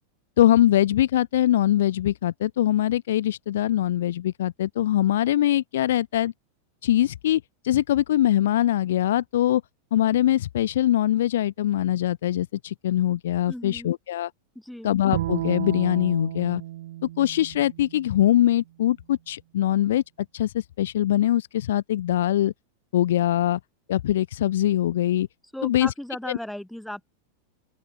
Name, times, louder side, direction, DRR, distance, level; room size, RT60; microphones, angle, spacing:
voice 1, 0.4-6.3 6.8-9.6 9.9-14.3 14.8-16.6 17.2-20.0 20.3-22.5 22.9-23.6 23.9-25.3 25.6-25.9 26.3-26.4, left 12 dB, 60° left, 1.4 m, -22 dB
voice 2, 13.5-13.9 14.6-14.9 25.5-27.1, left 1 dB, ahead, 5.2 m, -36 dB
Bowed string instrument, 15.1-18.4, right 15 dB, 55° right, 1.3 m, -33 dB
open air
figure-of-eight pair, 90°, 0 cm